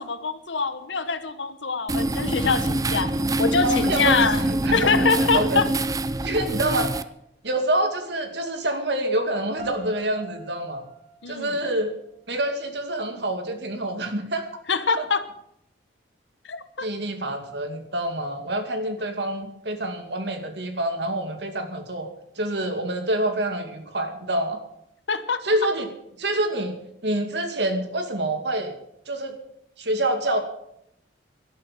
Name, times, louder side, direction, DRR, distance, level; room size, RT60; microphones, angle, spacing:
voice 1, 0.0-3.1 3.4-4.4 4.7-5.7 11.2-11.5 14.7-15.2 16.5-16.9 25.1-25.4, left 5 dB, 80° left, 11 dB, 1.2 m, -24 dB
sound 1, 1.9-7.0, right 1 dB, 20° right, 0.5 m, -25 dB
voice 2, 3.6-5.0 5.3-5.6 6.2-7.0 7.4-10.8 11.3-11.9 12.3-14.4 15.0-15.1 16.8-22.1 22.4-24.6 25.4-25.9 26.2-26.7 27.0-28.8 29.1-29.4 29.8-30.4, right 1 dB, 65° right, 6 dB, 2.4 m, -27 dB
sound 2, 9.6-12.6, right 3 dB, 45° right, 3.2 m, -44 dB
12.0 x 11.0 x 7.7 m, 0.76 s
head